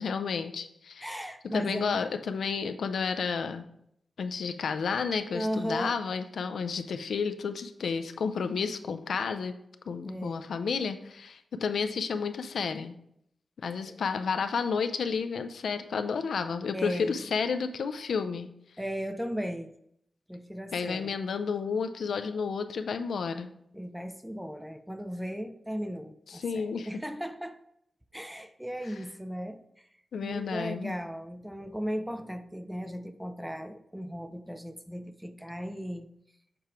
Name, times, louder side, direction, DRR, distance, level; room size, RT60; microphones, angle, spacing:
voice 1, 0.0-1.1 1.4-3.6 4.2-9.5 9.9-12.9 13.6-18.5 20.7-23.5 26.3-26.9 30.1-31.0, left 5 dB, 75° left, 9 dB, 0.4 m, -31 dB
voice 2, 1.0-2.0 5.3-6.0 10.0-10.5 13.9-14.0 16.7-17.2 18.8-19.8 20.3-21.1 23.7-27.6 28.1-29.9 30.2-36.1, equal, 5° right, 9 dB, 0.3 m, -36 dB
6.8 x 4.3 x 3.4 m, 0.74 s
wide cardioid pair, 160°, 0 cm